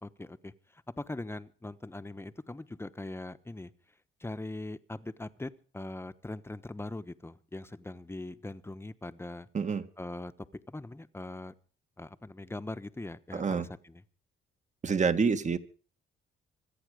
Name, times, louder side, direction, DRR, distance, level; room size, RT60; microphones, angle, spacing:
voice 1, 0.0-3.7 4.2-9.5 10.0-10.3 10.7-11.5 12.0-14.0, left 2 dB, 10° left, 12 dB, 1.0 m, -41 dB
voice 2, 13.3-13.7 14.8-15.6, right 5 dB, 35° right, 10 dB, 1.7 m, -27 dB
25.5 x 8.9 x 5.0 m, 0.41 s
cardioid pair, 90°, 20 cm